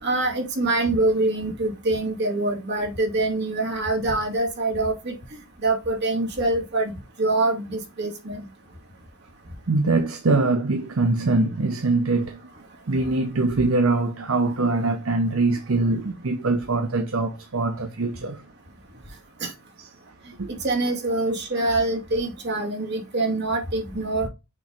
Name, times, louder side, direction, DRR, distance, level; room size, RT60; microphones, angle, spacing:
voice 1, 0.0-5.2 5.6-8.5 19.4-19.5 20.5-24.3, right 2 dB, 50° right, 2.4 m, -25 dB
voice 2, 9.7-12.4 12.9-18.4 20.4-20.6, right 3 dB, 65° right, 0.8 m, -23 dB
6.6 x 3.2 x 5.1 m
head